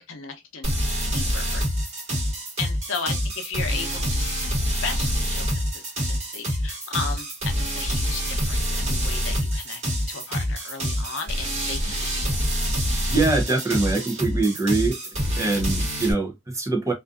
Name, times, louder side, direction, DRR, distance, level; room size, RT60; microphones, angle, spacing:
voice 1, 0.1-0.7 1.1-1.6 2.6-4.4 4.8-5.8 6.1-9.8 10.1-12.3, left 5 dB, 75° left, 0.6 m, -35 dB
sound 1, 0.6-16.1, equal, 35° right, 1.2 m, -26 dB
voice 2, 13.1-15.0 15.4-16.9, right 3 dB, 15° right, 0.6 m, -23 dB
2.5 x 2.3 x 2.4 m
head